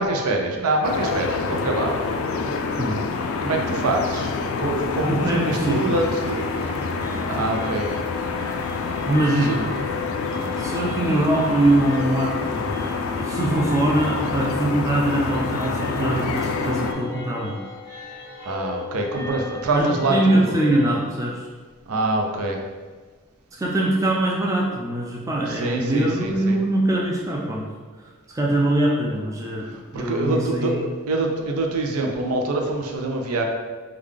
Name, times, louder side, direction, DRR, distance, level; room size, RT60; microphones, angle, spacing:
voice 1, 0.0-2.0 3.4-6.8 7.2-7.9 9.5-9.6 10.3-10.5 18.5-20.5 21.9-22.6 25.5-26.6 29.9-33.4, right 2 dB, 90° right, 2 dB, 0.5 m, -25 dB
sound 1, 0.8-16.9, left 4 dB, 70° left, 0.3 m, -27 dB
voice 2, 5.1-6.0 9.1-9.7 10.6-12.8 13.2-17.5 19.7-21.5 23.6-27.7 28.3-29.7 29.9-30.8, right 1 dB, 15° right, -2 dB, 0.3 m, -22 dB
sound 2, 6.3-20.9, left 5 dB, 40° right, 1.5 m, -36 dB
3.7 x 2.3 x 3.2 m, 1.4 s
head